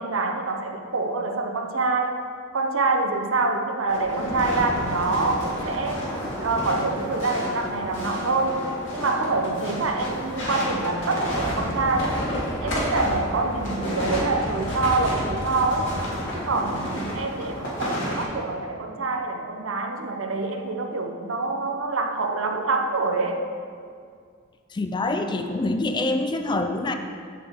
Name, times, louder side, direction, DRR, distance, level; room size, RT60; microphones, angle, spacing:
voice 1, 0.0-2.2 2.5-6.1 6.4-12.2 12.6-16.0 16.3-23.4, right 3 dB, 80° right, 5 dB, 0.7 m, -26 dB
sound 1, 3.9-18.2, equal, 65° left, 2.0 m, -30 dB
voice 2, 24.7-26.9, left 2 dB, 25° left, 7 dB, 0.4 m, -25 dB
7.5 x 7.3 x 3.5 m, 2.1 s
head